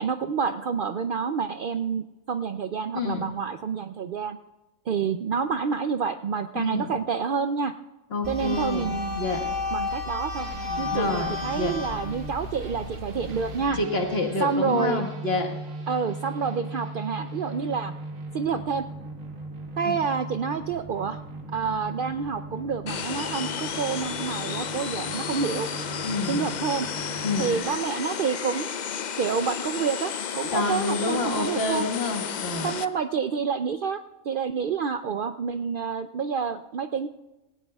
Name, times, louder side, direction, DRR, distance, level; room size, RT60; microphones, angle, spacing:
voice 1, 0.0-4.4 4.9-7.7 8.3-9.3 9.7-10.5 10.8-13.8 14.4-15.0 15.9-17.9 18.3-18.8 19.8-21.2 21.5-25.7 26.3-26.9 27.4-28.7 29.2-31.9 32.6-34.0 34.3-37.1, right 6 dB, 90° right, 8 dB, 0.4 m, -28 dB
voice 2, 2.9-3.3 6.6-7.0 8.1-9.6 10.9-11.8 13.7-15.5 19.8-20.0 26.0-26.5 27.2-27.6 30.5-32.7, left 2 dB, 45° left, 3 dB, 1.8 m, -28 dB
sound 1, 8.2-13.7, left 3 dB, 15° left, 3.4 m, -33 dB
sound 2, 10.4-27.6, right 2 dB, 60° right, 1.7 m, -39 dB
sound 3, 22.9-32.9, left 7 dB, 70° left, 0.4 m, -32 dB
18.5 x 17.0 x 2.3 m, 1.1 s
omnidirectional pair, 1.5 m